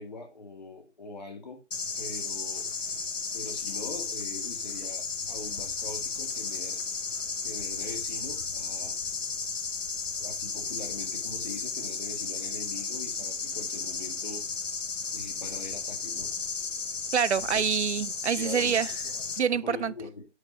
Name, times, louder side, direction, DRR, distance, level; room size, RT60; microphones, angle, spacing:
voice 1, 0.0-1.6 2.0-2.7 3.3-6.8 7.4-9.0 10.2-14.5 15.1-16.3 17.5-17.7 18.4-18.8 19.5-20.3, left 3 dB, 35° left, 2.2 m, -42 dB
sound 1, 1.7-19.4, left 5 dB, 85° left, 1.3 m, -34 dB
voice 2, 17.1-18.9 19.4-19.9, right 7 dB, 65° right, 0.6 m, -26 dB
9.8 x 4.8 x 4.8 m
hypercardioid pair, 175°, 37 cm